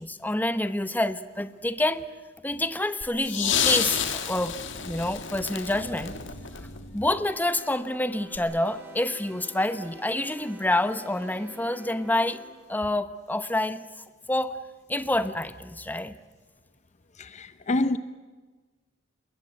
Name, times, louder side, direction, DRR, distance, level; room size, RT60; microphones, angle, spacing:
voice 1, 0.0-2.1 2.4-4.6 4.8-6.1 6.9-12.4 12.7-13.8 14.3-14.6 14.9-16.1, left 1 dB, 10° left, 0.9 m, -27 dB
sound 1, 3.0-7.2 8.3-8.4, left 8 dB, 65° left, 1.9 m, -30 dB
sound 2, 7.3-12.5, right 1 dB, 10° right, 4.4 m, -48 dB
voice 2, 17.2-18.0, left 2 dB, 35° left, 0.7 m, -27 dB
27.5 x 21.5 x 7.7 m
head